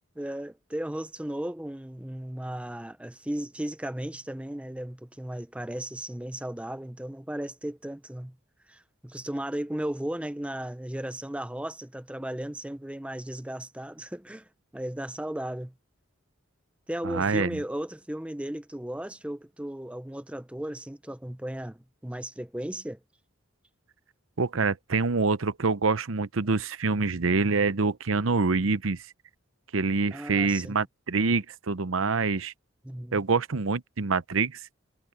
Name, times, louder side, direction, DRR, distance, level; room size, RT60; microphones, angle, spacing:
voice 1, 0.2-8.4 8.7-15.7 16.9-23.0 30.1-30.8 32.8-33.2, right 1 dB, 5° right, 0.5 m, -35 dB
voice 2, 17.0-17.6 24.4-29.0 29.7-32.5 33.1-34.6, right 4 dB, 85° right, 0.8 m, -26 dB
head